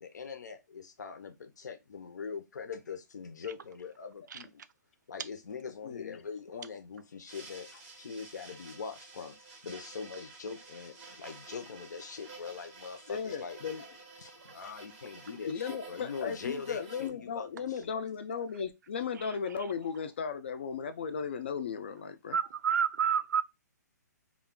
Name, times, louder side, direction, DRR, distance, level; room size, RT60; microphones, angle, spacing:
voice 1, 0.0-4.6 5.1-9.4 9.6-13.6 14.2-17.9, left 5 dB, 75° left, 0.6 m, -42 dB
voice 2, 5.8-6.2 13.1-13.9 15.5-22.4, left 6 dB, 35° left, 0.3 m, -36 dB
sound 1, 7.3-17.1, right 3 dB, 10° right, 0.6 m, -51 dB
voice 3, 19.2-19.7 22.3-23.4, right 7 dB, 75° right, 0.4 m, -30 dB
2.3 x 2.2 x 3.6 m
hypercardioid pair, 175°, 10 cm